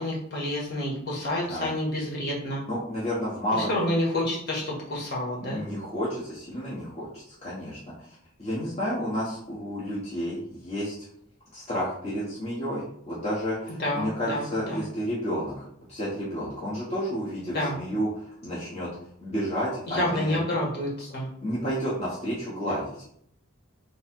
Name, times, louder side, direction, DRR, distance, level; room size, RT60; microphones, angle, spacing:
voice 1, 0.0-2.6 3.5-5.6 13.8-14.8 17.5-17.8 19.9-21.3, left 1 dB, 50° left, -4 dB, 1.7 m, -29 dB
voice 2, 2.7-3.7 5.5-8.1 8.4-10.9 11.5-15.6 15.9-18.9 19.2-20.4 21.4-23.0, equal, 35° left, -9 dB, 1.2 m, -31 dB
3.5 x 3.2 x 4.5 m, 0.69 s
head